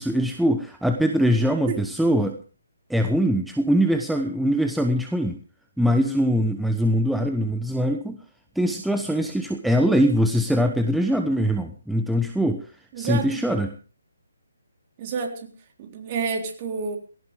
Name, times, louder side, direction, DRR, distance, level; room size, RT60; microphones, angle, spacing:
voice 1, 0.0-2.4 2.9-5.4 5.8-8.2 8.5-12.7 13.0-13.8, equal, ahead, 5 dB, 0.9 m, -22 dB
voice 2, 12.9-13.4 15.0-15.5 15.8-17.0, right 6 dB, 30° right, 2 dB, 3.8 m, -29 dB
19.0 x 17.5 x 3.5 m, 0.39 s
figure-of-eight pair, 145°, 0 cm